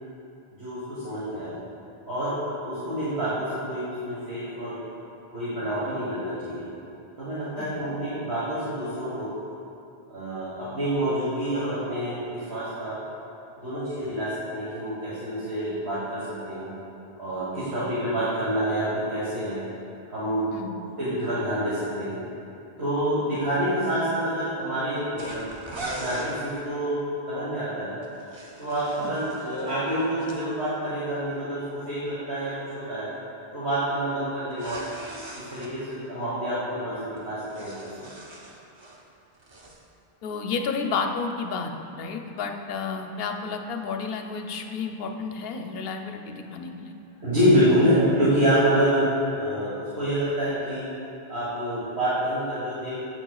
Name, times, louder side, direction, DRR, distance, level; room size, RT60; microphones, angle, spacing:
voice 1, 0.5-1.6 2.0-4.8 5.3-6.7 7.2-9.3 10.1-13.0 13.6-16.7 17.2-19.6 20.1-20.5 20.8-22.2 22.8-25.4 25.8-27.0 27.3-28.0 28.6-33.1 33.5-34.8 35.3-37.9 47.2-50.9 51.3-53.0, equal, 80° right, -11 dB, 1.7 m, -27 dB
sound 1, 25.2-26.4 28.0-30.4 34.5-35.7 37.2-39.0 39.3-39.8, right 2 dB, 35° right, 0.5 m, -40 dB
voice 2, 40.2-41.7 42.0-46.9, left 5 dB, 70° left, 4 dB, 0.7 m, -31 dB
8.4 x 6.9 x 2.3 m, 2.7 s
omnidirectional pair, 1.0 m